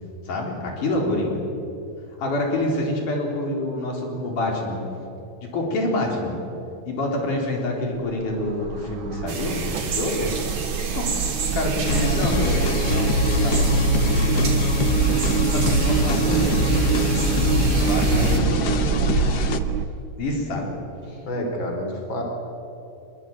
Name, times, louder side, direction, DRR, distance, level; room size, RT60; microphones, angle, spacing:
voice 1, 0.3-1.4 2.2-4.8 5.4-6.4 6.9-10.3 10.9-11.1 11.5-14.5 15.1-16.4 16.9-17.1 17.8-18.8 20.2-20.7 21.1-21.2, left 1 dB, 90° left, 0 dB, 5.7 m, -27 dB
sound 1, 7.9-19.9, right 7 dB, 85° right, 1.1 m, -25 dB
sound 2, 9.3-18.4, right 5 dB, 60° right, 4.3 m, -32 dB
sound 3, 11.9-19.6, left 3 dB, 70° left, 0.9 m, -23 dB
voice 2, 16.3-16.6 18.2-18.3 21.2-22.2, equal, 40° left, 3 dB, 4.0 m, -28 dB
26.0 x 22.0 x 9.3 m, 2.8 s
omnidirectional pair, 3.5 m